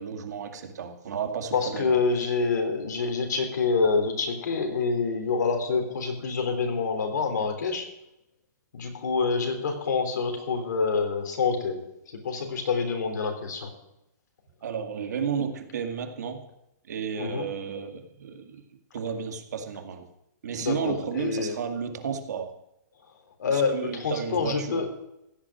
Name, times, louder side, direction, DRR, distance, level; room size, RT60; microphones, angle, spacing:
voice 1, 0.0-2.0 14.6-16.4 16.9-18.6 18.9-20.1 20.4-22.5 23.4-24.8, right 6 dB, 65° right, 5 dB, 2.1 m, -32 dB
voice 2, 1.5-7.9 8.7-11.8 12.1-13.7 17.2-17.5 20.6-21.5 23.4-24.9, left 4 dB, 75° left, 4 dB, 3.7 m, -27 dB
16.0 x 6.3 x 10.0 m, 0.85 s
hypercardioid pair, 170°, 10 cm